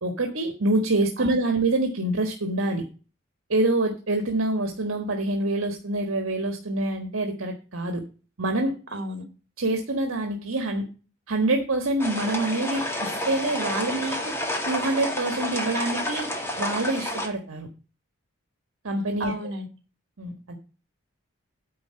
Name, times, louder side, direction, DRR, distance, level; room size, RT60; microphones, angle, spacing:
voice 1, 0.0-2.8 3.5-8.0 8.4-8.7 9.6-10.9 11.3-14.3 14.7-16.3 16.6-17.7 18.8-19.3 20.2-20.6, right 2 dB, 75° right, 4 dB, 1.4 m, -26 dB
voice 2, 8.9-9.2 19.2-19.7, right 1 dB, 55° right, 5 dB, 2.6 m, -32 dB
sound 1, 12.0-17.3, left 1 dB, 10° left, 1.8 m, -30 dB
9.5 x 4.3 x 7.6 m, 0.34 s
head